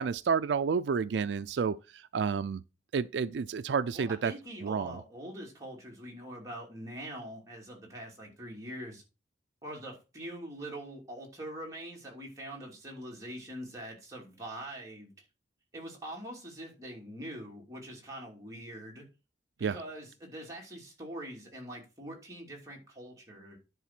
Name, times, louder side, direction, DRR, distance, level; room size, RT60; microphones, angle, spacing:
voice 1, 0.0-2.6 2.9-4.3 4.6-5.0 19.6-19.8, right 6 dB, 85° right, 0.4 m, -30 dB
voice 2, 3.9-9.0 9.6-15.1 15.7-19.1 19.6-23.6, right 1 dB, 20° right, 2.9 m, -43 dB
10.0 x 4.0 x 5.9 m
head